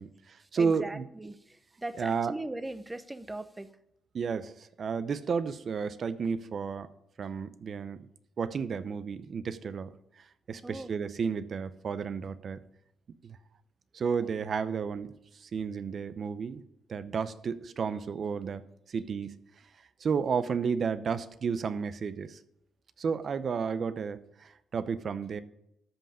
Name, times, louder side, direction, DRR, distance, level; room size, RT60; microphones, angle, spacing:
voice 1, 0.0-1.1 2.0-2.3 4.1-6.9 7.2-8.0 8.4-9.9 10.5-12.6 13.2-13.4 13.9-15.1 15.4-16.6 16.9-18.6 18.9-19.3 20.0-22.4 23.0-25.4, right 6 dB, 50° right, 14 dB, 0.7 m, -32 dB
voice 2, 0.6-3.7 10.6-10.9, right 2 dB, 15° right, 12 dB, 0.8 m, -39 dB
13.0 x 5.6 x 5.0 m, 0.82 s
cardioid pair, 90°, 0 cm